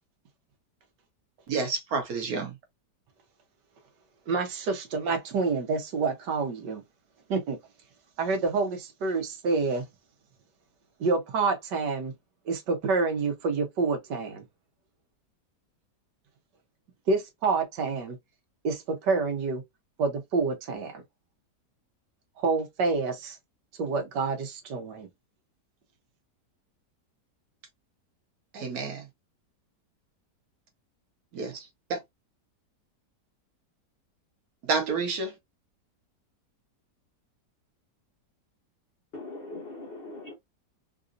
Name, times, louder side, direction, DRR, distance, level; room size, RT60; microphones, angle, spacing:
voice 1, 1.5-2.5 28.5-29.0 31.3-31.6 31.9-32.0 34.7-35.3, right 4 dB, 65° right, 1.4 m, -29 dB
voice 2, 4.3-6.8 7.3-7.6 8.2-9.8 11.0-12.1 12.5-14.4 17.1-18.2 18.6-19.6 20.0-21.0 22.4-23.4 23.8-25.1, right 4 dB, 80° right, 1.5 m, -28 dB
voice 3, 39.1-40.3, left 2 dB, 55° left, 0.7 m, -40 dB
3.9 x 2.5 x 2.5 m
omnidirectional pair, 1.8 m